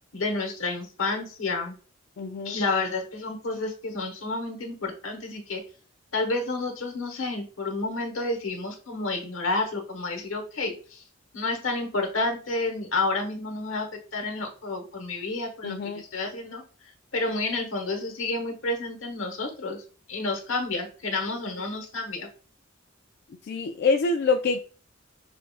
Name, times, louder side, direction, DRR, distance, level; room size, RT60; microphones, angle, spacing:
voice 1, 0.1-1.8 2.4-5.6 6.1-11.0 11.3-13.9 14.1-16.6 17.1-19.8 20.1-22.3, left 3 dB, 80° left, 1.2 m, -30 dB
voice 2, 2.2-2.6 15.6-16.0 23.5-24.6, left 4 dB, 50° left, 0.3 m, -25 dB
6.6 x 2.4 x 2.4 m
head